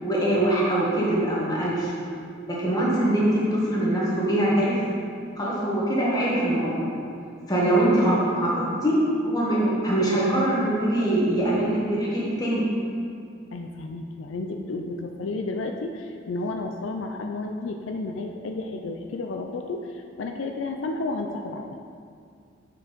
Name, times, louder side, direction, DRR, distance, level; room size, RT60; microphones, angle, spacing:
voice 1, 0.0-1.9 2.5-4.8 5.4-7.0 7.5-8.9 9.2-12.6, right 1 dB, 20° left, -6 dB, 1.5 m, -23 dB
voice 2, 13.5-21.6, left 2 dB, 80° left, 4 dB, 0.4 m, -32 dB
6.0 x 4.6 x 5.1 m, 2.3 s
head